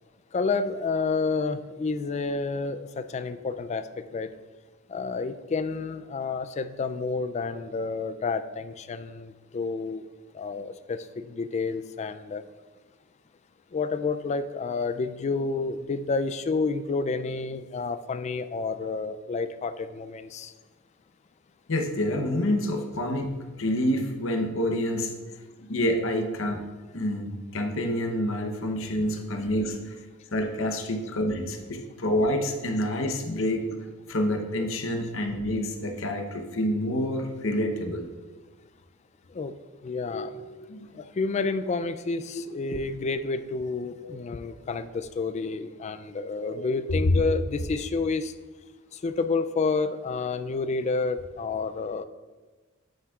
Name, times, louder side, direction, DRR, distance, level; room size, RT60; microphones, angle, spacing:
voice 1, 0.3-3.8 4.1-4.3 4.9-10.0 10.3-12.4 13.7-20.5 29.3-29.5 39.3-39.5 39.8-40.4 41.0-48.3 49.0-52.0, left 4 dB, 35° left, 11 dB, 0.3 m, -29 dB
voice 2, 21.7-23.3 23.6-25.2 25.6-26.6 26.9-29.9 30.3-33.7 34.1-38.1 40.1-40.3 40.7-40.9 44.0-44.1 46.4-46.6 47.1-47.2, left 1 dB, 65° left, 4 dB, 0.9 m, -27 dB
8.8 x 7.9 x 2.4 m, 1.3 s
head